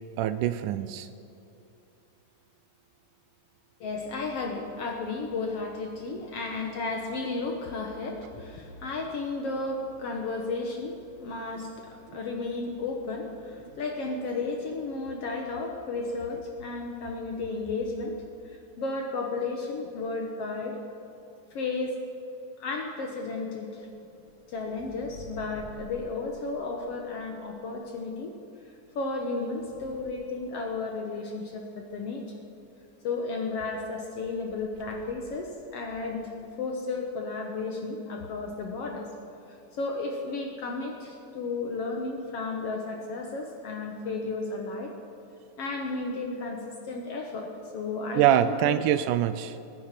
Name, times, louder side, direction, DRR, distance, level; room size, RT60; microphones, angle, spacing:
voice 1, 0.2-1.1 48.2-49.6, right 11 dB, 80° right, 12 dB, 1.9 m, -24 dB
voice 2, 3.8-18.2 18.5-20.8 21.5-22.0 22.6-23.9 24.5-28.3 28.7-32.4 33.0-36.3 36.6-39.1 39.5-44.9 45.6-48.8, left 3 dB, 65° left, 2 dB, 1.7 m, -33 dB
sound 1, 23.8-27.9 28.8-31.2 34.5-35.4 35.8-36.2, right 2 dB, 60° right, 1.0 m, -51 dB
20.0 x 10.0 x 5.9 m, 2.8 s
omnidirectional pair, 3.8 m